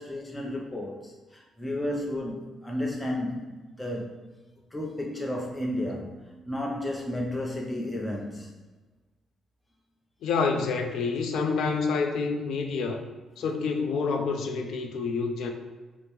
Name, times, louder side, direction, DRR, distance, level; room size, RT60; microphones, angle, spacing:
voice 1, 0.0-4.2 4.7-8.5, left 1 dB, 10° left, -1 dB, 0.6 m, -33 dB
voice 2, 10.2-13.0 13.4-15.5, left 4 dB, 75° left, 4 dB, 0.5 m, -28 dB
5.0 x 2.0 x 3.0 m, 1.3 s
cardioid pair, 90°, 0 cm